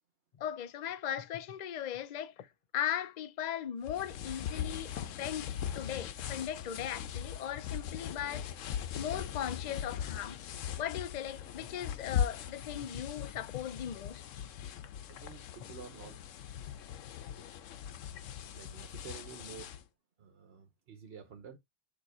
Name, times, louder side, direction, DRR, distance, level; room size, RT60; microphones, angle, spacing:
voice 1, 0.4-2.5 2.7-8.5 9.0-10.4 10.8-14.2, left 10 dB, 50° left, 0.5 m, -38 dB
sound 1, 3.8-19.8, left 9 dB, 85° left, 1.0 m, -40 dB
voice 2, 15.1-16.2 18.5-19.8 20.2-21.6, right 6 dB, 55° right, 1.1 m, -50 dB
6.8 x 2.9 x 4.8 m
omnidirectional pair, 1.3 m